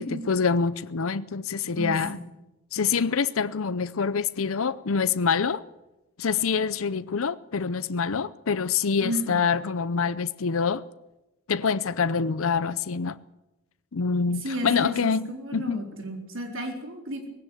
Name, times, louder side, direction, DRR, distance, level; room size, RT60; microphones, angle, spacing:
voice 1, 0.0-2.2 2.7-5.6 6.2-10.8 11.5-13.2 13.9-15.8, left 5 dB, 75° left, 0.7 m, -26 dB
voice 2, 9.0-9.4 14.4-17.3, right 1 dB, 65° right, 4.2 m, -33 dB
19.0 x 17.0 x 8.3 m
head